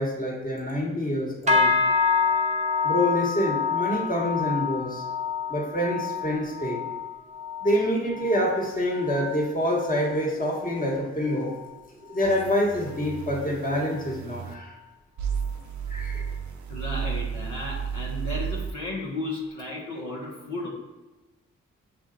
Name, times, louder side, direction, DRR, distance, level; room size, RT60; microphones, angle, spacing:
voice 1, 0.0-1.7 2.8-5.0 5.5-6.8 7.6-11.5 12.0-14.7 15.9-16.3, equal, 25° left, -2 dB, 1.5 m, -26 dB
sound 1, 1.5-11.0 11.3-11.8 12.2-12.5 13.0-13.1, left 5 dB, 25° right, 0.7 m, -28 dB
sound 2, 12.2-14.5 15.2-18.7, right 7 dB, 65° right, 0.6 m, -33 dB
voice 2, 16.7-20.7, left 2 dB, 75° left, -4 dB, 1.1 m, -34 dB
6.7 x 2.6 x 2.5 m, 1.1 s
supercardioid pair, 45°, 31 cm